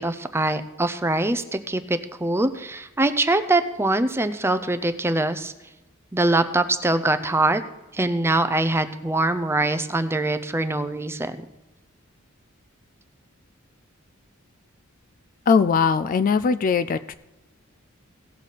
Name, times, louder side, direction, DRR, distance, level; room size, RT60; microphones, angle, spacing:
voice 1, 0.0-5.5 6.1-7.6 7.9-11.4, right 2 dB, 10° right, 10 dB, 0.5 m, -23 dB
voice 2, 15.5-17.1, left 5 dB, 40° left, 12 dB, 0.3 m, -20 dB
17.5 x 6.7 x 4.1 m, 0.98 s
head